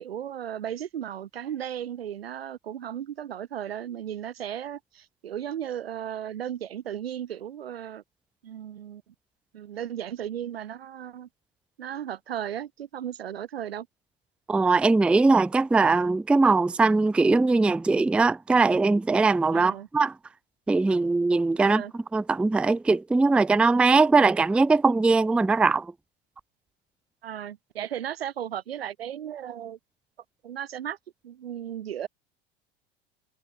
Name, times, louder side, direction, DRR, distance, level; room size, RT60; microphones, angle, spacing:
voice 1, 0.0-8.0 8.4-9.1 9.5-11.3 11.8-13.9 19.5-19.9 21.6-21.9 27.2-29.8 30.4-31.0 31.2-32.1, right 10 dB, 85° right, 1.2 m, -35 dB
voice 2, 14.5-20.1 20.7-21.8 22.1-25.9, right 3 dB, 5° right, 0.4 m, -21 dB
hypercardioid pair, 80°, 30 cm